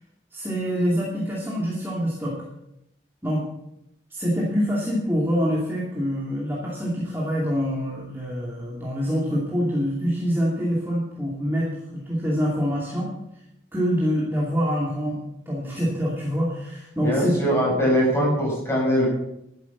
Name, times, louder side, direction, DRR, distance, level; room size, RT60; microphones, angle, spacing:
voice 1, 0.3-2.4 3.2-3.4 4.1-13.1 13.7-15.2 15.5-17.4, equal, 10° right, -5 dB, 2.4 m, -25 dB
voice 2, 17.0-19.1, equal, 15° left, -3 dB, 6.0 m, -21 dB
12.0 x 10.5 x 7.2 m, 0.83 s
head